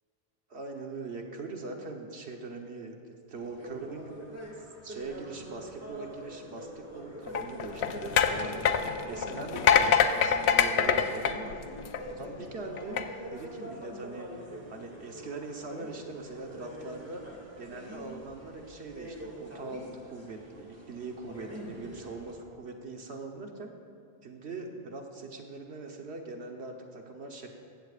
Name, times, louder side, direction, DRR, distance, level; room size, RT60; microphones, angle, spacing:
voice 1, 0.5-4.1 4.6-8.7 9.0-11.6 12.1-13.0 13.3-14.3 14.7-17.2 17.6-23.7 24.2-27.5, right 3 dB, 90° right, 2 dB, 1.4 m, -41 dB
sound 1, 3.3-22.3, equal, 15° right, 2.3 m, -45 dB
sound 2, 7.3-12.2 12.8-13.0, left 7 dB, 85° left, 0.9 m, -25 dB
15.0 x 15.0 x 2.5 m, 2.3 s
omnidirectional pair, 1.1 m